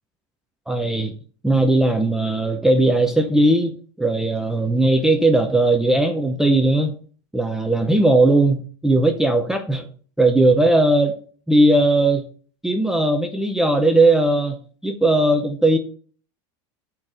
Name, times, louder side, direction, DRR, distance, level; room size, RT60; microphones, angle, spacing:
voice 1, 0.7-1.1 1.4-6.9 7.3-9.9 10.2-11.1 11.5-12.3 12.6-15.8, right 2 dB, 5° right, 5 dB, 0.7 m, -18 dB
8.5 x 4.4 x 6.2 m, 0.42 s
supercardioid pair, 140°, 16 cm